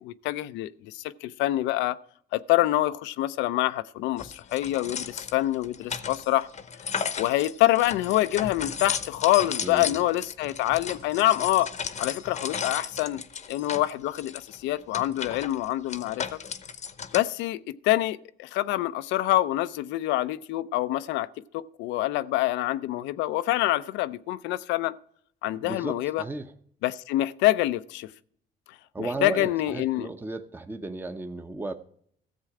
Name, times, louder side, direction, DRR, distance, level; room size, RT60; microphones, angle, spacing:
voice 1, 0.0-2.0 2.3-6.5 7.2-11.7 12.0-13.2 13.5-16.4 17.1-21.3 21.5-25.0 25.4-26.2 26.8-28.1 29.0-30.1, left 15 dB, 85° left, 0.5 m, -26 dB
sound 1, 4.2-17.2, left 6 dB, 40° left, 0.8 m, -35 dB
voice 2, 9.6-10.0 25.6-26.5 28.9-31.7, right 2 dB, 10° right, 0.7 m, -34 dB
14.0 x 7.4 x 4.8 m
cardioid pair, 90°, 18 cm